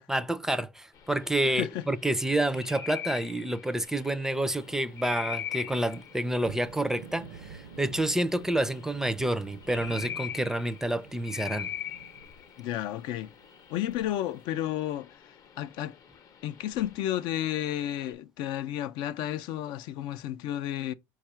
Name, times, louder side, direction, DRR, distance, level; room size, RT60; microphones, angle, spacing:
voice 1, 0.0-11.7, right 1 dB, 5° right, 0.4 m, -29 dB
sound 1, 0.9-18.1, left 9 dB, 45° left, 0.7 m, -43 dB
voice 2, 1.4-1.8 12.6-13.3 13.7-15.1 15.6-16.0 16.4-20.9, left 12 dB, 70° left, 0.4 m, -32 dB
sound 2, 4.3-14.4, right 6 dB, 85° right, 0.7 m, -50 dB
4.6 x 2.3 x 4.3 m
supercardioid pair, 105°, 8 cm